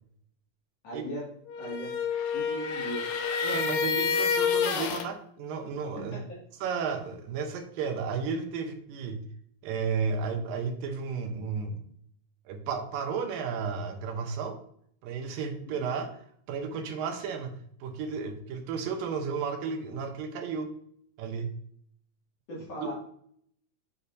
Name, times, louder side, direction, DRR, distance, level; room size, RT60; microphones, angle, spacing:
voice 1, 0.8-1.3 1.6-1.9 2.3-3.0 5.9-6.2 15.6-15.7 22.5-22.9, right 1 dB, 50° left, -5 dB, 3.3 m, -38 dB
sound 1, 1.5-5.1, left 6 dB, 85° left, 2.4 m, -28 dB
voice 2, 3.4-6.1 6.6-9.3 9.6-11.8 12.5-14.6 15.0-16.1 16.5-17.5 17.8-20.7 21.2-21.5, right 5 dB, 90° right, 5 dB, 2.6 m, -33 dB
8.4 x 5.5 x 2.7 m, 0.66 s
omnidirectional pair, 3.9 m